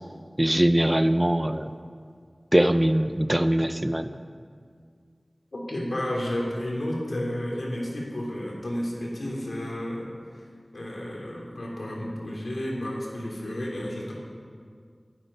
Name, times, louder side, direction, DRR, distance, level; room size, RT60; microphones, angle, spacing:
voice 1, 0.4-1.7 2.5-4.1, right 1 dB, 25° right, 10 dB, 0.8 m, -22 dB
voice 2, 5.5-10.5 10.7-14.1, left 1 dB, 85° left, -2 dB, 3.6 m, -32 dB
15.0 x 13.0 x 5.7 m, 2.1 s
wide cardioid pair, 50°, 0 cm